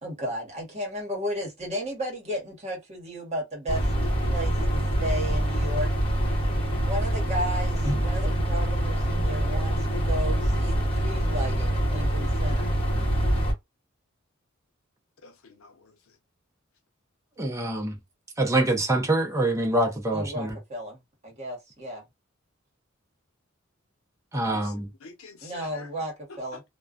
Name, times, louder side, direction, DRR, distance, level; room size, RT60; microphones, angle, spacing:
voice 1, 0.0-3.8 4.3-5.9 6.8-12.7 20.1-22.0 25.4-26.6, equal, 35° right, 1.2 m, -34 dB
sound 1, 3.7-13.5, right 1 dB, 25° left, 0.9 m, -25 dB
voice 2, 15.2-16.1 24.5-25.9 26.3-26.6, left 4 dB, 85° left, 0.7 m, -48 dB
voice 3, 17.4-18.0 18.4-20.5 24.3-24.9, right 1 dB, 15° right, 0.6 m, -25 dB
2.3 x 2.2 x 2.4 m
head